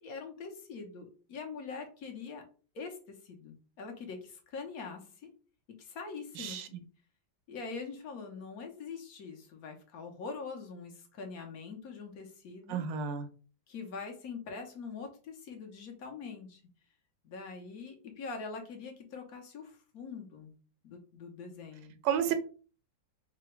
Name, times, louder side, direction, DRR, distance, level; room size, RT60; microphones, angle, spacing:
voice 1, 0.0-2.4 2.7-5.3 5.8-6.8 7.5-12.8 13.7-16.6 17.2-20.5 20.8-22.0 22.3-22.4, left 4 dB, 60° left, 1.2 m, -43 dB
voice 2, 6.4-6.7 12.7-13.3 22.0-22.3, right 8 dB, 75° right, 1.2 m, -31 dB
3.9 x 2.2 x 4.4 m
omnidirectional pair, 2.0 m